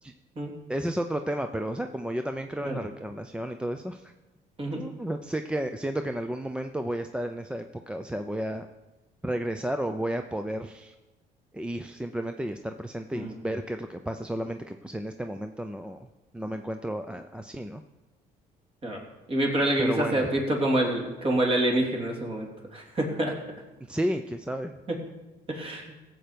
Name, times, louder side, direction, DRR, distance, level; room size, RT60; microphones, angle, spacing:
voice 1, 0.7-4.1 4.8-8.7 9.2-10.9 11.5-16.1 16.3-17.8 19.8-20.3 23.9-24.8, right 1 dB, 5° right, 6 dB, 0.5 m, -32 dB
voice 2, 19.3-23.3 25.5-25.9, right 1 dB, 35° right, 0 dB, 3.1 m, -27 dB
16.5 x 7.7 x 5.2 m, 1.1 s
cardioid pair, 110°, 17 cm